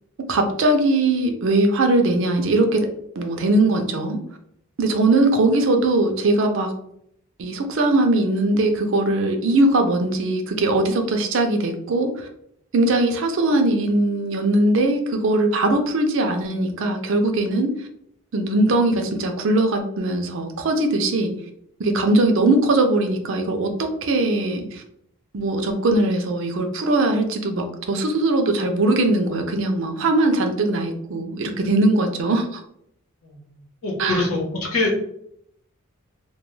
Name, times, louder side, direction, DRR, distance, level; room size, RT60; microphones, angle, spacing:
voice 1, 0.3-2.9 3.2-4.2 4.8-6.7 7.4-12.3 12.7-17.7 18.3-21.3 21.8-24.8 25.3-32.6 34.0-34.2, right 2 dB, 60° right, 5 dB, 0.4 m, -20 dB
voice 2, 33.8-35.0, left 2 dB, 80° left, -1 dB, 0.9 m, -24 dB
2.2 x 2.2 x 3.1 m, 0.71 s
head